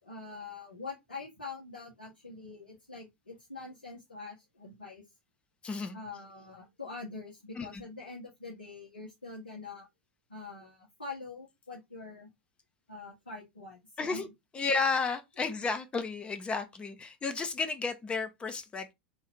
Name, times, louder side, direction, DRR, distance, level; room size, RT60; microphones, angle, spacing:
voice 1, 0.0-5.0 5.9-9.9 10.3-12.3 12.9-14.2 15.4-15.5, left 3 dB, 90° left, 1.4 m, -44 dB
voice 2, 5.6-6.0 7.6-7.7 14.0-14.3 14.5-18.9, left 4 dB, 20° left, 0.7 m, -32 dB
3.1 x 2.6 x 3.5 m
figure-of-eight pair, 85°, 5 cm